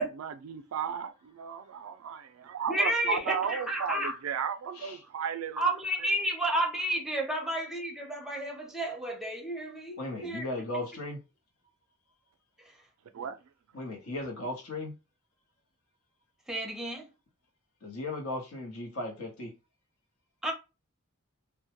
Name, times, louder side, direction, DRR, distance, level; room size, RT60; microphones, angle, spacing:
voice 1, 0.0-5.6 13.1-13.4, right 7 dB, 75° right, 0.3 m, -35 dB
voice 2, 2.7-4.2 5.6-10.5 16.5-17.1 20.4-20.5, right 1 dB, ahead, 0.6 m, -31 dB
voice 3, 10.0-11.2 13.7-14.9 17.8-19.5, left 2 dB, 80° left, 0.9 m, -36 dB
2.2 x 2.0 x 2.8 m
head